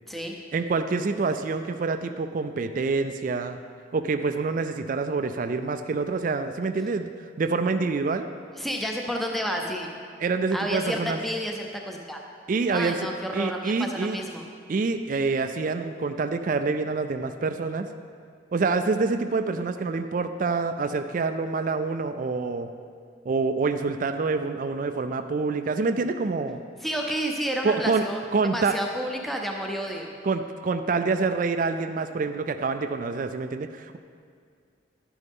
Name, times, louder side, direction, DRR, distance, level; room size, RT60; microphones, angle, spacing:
voice 1, 0.5-3.6 3.9-7.1 7.4-8.3 10.2-11.2 12.5-13.1 13.3-14.2 14.7-17.9 18.5-22.7 23.3-26.6 27.6-28.0 28.3-28.8 30.2-34.0, right 4 dB, 45° right, 8 dB, 0.3 m, -26 dB
voice 2, 8.6-9.9 10.5-12.2 12.7-14.5 26.8-28.2 28.5-30.1, equal, ahead, 1 dB, 0.6 m, -30 dB
11.0 x 10.5 x 3.6 m, 2.1 s
head